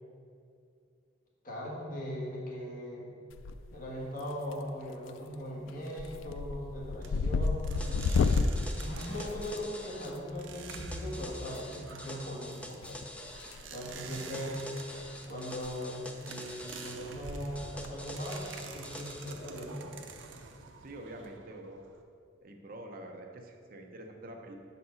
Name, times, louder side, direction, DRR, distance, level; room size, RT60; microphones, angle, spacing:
voice 1, 1.4-3.1 3.7-7.7 8.8-12.8 13.7-14.6 15.3-19.8, equal, 45° left, -4 dB, 1.4 m, -39 dB
sound 1, 3.3-3.9 4.2-4.7 5.1-5.3 5.7-10.1 11.4-11.6 12.8-13.6 13.9-14.1 14.7-14.8 15.0-15.1 15.5-15.7 15.9-16.0 17.6-17.9, left 4 dB, 85° left, 0.3 m, -31 dB
sound 2, 7.0-22.0, right 3 dB, 85° right, 0.6 m, -47 dB
sound 3, 7.8-10.1 10.7-13.6 14.1-17.0 17.6-19.3, left 1 dB, 5° left, 0.5 m, -46 dB
voice 2, 9.1-9.5 13.9-14.4 20.8-21.8 22.4-24.5, right 1 dB, 50° right, 3 dB, 0.8 m, -47 dB
6.5 x 4.2 x 5.6 m, 2.4 s
head